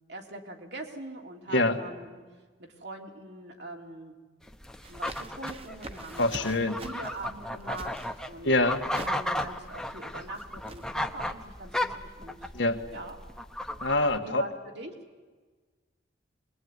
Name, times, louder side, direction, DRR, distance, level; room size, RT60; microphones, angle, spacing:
voice 1, 0.1-2.2 2.6-4.1 4.9-8.5 9.0-12.5 12.9-13.2 14.2-14.9, right 2 dB, 70° right, 1 dB, 3.4 m, -42 dB
voice 2, 1.5-1.8 6.2-6.8 8.4-8.8 12.5-12.8 13.8-14.5, left 2 dB, 85° left, 5 dB, 1.9 m, -25 dB
sound 1, 4.4-14.2, left 1 dB, 5° left, 0.9 m, -35 dB
sound 2, 4.8-10.9, right 2 dB, 30° right, 1.2 m, -46 dB
24.5 x 22.0 x 9.7 m, 1.4 s
head